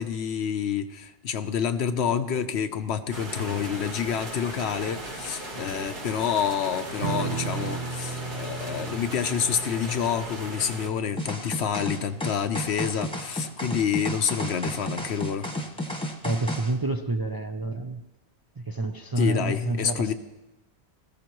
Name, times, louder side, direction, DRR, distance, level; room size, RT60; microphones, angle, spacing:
voice 1, 0.0-15.5 19.2-20.1, left 7 dB, 80° left, 1.0 m, -28 dB
sound 1, 3.1-10.9, right 1 dB, 45° right, 1.5 m, -37 dB
Strum, 7.0-13.9, right 4 dB, 90° right, 1.2 m, -36 dB
sound 2, 11.2-16.7, equal, 5° left, 1.1 m, -32 dB
voice 2, 16.2-18.0 18.6-20.1, right 2 dB, 30° right, 0.4 m, -28 dB
19.0 x 14.5 x 3.1 m
omnidirectional pair, 1.1 m